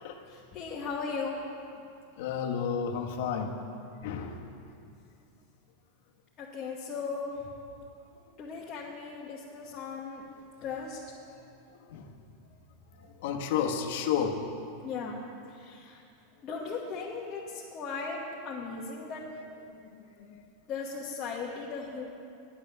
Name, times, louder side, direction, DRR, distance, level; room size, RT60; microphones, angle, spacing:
voice 1, 0.3-1.4 6.4-7.4 8.4-10.2 10.6-11.0 14.8-15.2 15.5-16.0 16.4-19.2 20.7-22.0, left 5 dB, 30° left, -4 dB, 1.2 m, -37 dB
voice 2, 2.2-3.6 4.0-4.4 4.7-4.8 9.7-9.8 10.2-10.4 11.9-12.1 12.9-14.4 19.9-20.4, left 7 dB, 65° left, 3 dB, 1.1 m, -32 dB
9.9 x 8.6 x 6.8 m, 2.5 s
supercardioid pair, 145°, 0 cm